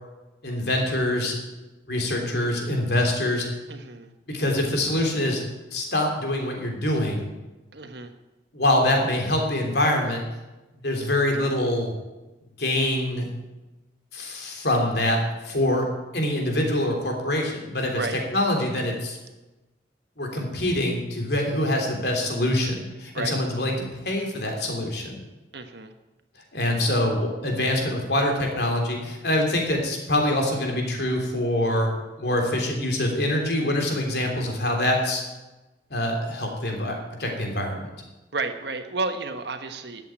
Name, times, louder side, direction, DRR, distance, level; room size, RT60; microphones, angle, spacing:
voice 1, 0.4-1.4 1.9-3.4 4.3-5.4 5.7-7.3 8.5-10.2 10.8-11.9 12.6-13.2 14.1-15.2 15.4-15.9 16.1-18.0 18.3-19.2 20.2-23.8 24.0-25.2 26.5-35.2 35.9-37.9, left 1 dB, 60° left, 2 dB, 3.3 m, -25 dB
voice 2, 3.7-4.1 7.7-8.1 17.9-18.2 23.1-23.4 25.5-25.9 38.3-40.0, right 3 dB, 60° right, 7 dB, 1.3 m, -31 dB
13.5 x 8.3 x 9.0 m, 1.1 s
head